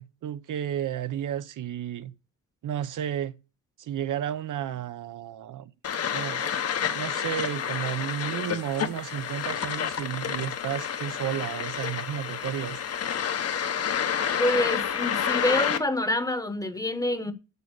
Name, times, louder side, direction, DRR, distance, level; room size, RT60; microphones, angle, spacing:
voice 1, 0.0-2.1 2.6-3.4 3.8-5.7 6.1-12.8, right 10 dB, 60° right, 0.8 m, -32 dB
sound 1, 5.8-15.8, left 8 dB, 45° left, 1.0 m, -29 dB
voice 2, 14.4-17.3, left 1 dB, 10° left, 1.0 m, -27 dB
8.1 x 7.8 x 8.2 m
wide cardioid pair, 175°, 34 cm